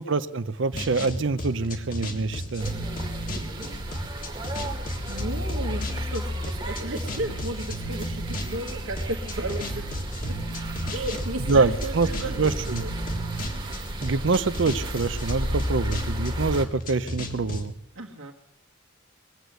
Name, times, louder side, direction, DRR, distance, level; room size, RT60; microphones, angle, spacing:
voice 1, 0.0-2.7 11.5-12.1 12.4-12.8 14.0-17.7, right 3 dB, 60° right, 14 dB, 0.6 m, -25 dB
sound 1, 0.7-17.7, left 1 dB, 45° left, 1.7 m, -33 dB
sound 2, 2.6-16.7, right 1 dB, 25° right, 1.5 m, -35 dB
voice 2, 3.3-3.8 5.1-9.9 10.3-10.4 10.9-12.9 17.9-18.3, right 1 dB, 85° right, -3 dB, 1.6 m, -35 dB
21.0 x 8.0 x 8.0 m, 0.82 s
head